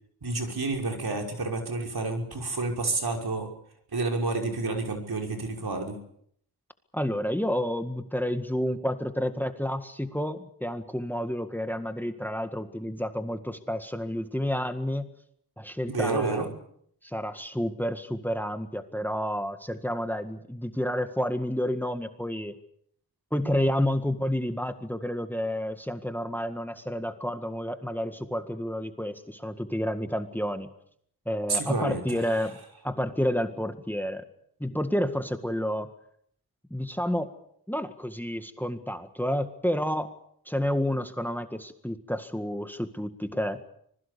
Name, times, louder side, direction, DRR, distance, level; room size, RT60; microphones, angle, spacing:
voice 1, 0.2-3.5 3.9-6.0 15.9-16.5 31.5-32.5, right 3 dB, 70° right, 2 dB, 5.8 m, -29 dB
voice 2, 6.9-15.1 15.6-16.5 17.0-22.5 23.3-30.7 31.3-32.6 32.8-34.2 34.6-35.9 36.7-37.3 37.7-40.1 40.5-43.6, equal, 5° left, 8 dB, 1.8 m, -30 dB
26.0 x 21.0 x 7.0 m, 0.68 s
wide cardioid pair, 65°, 40 cm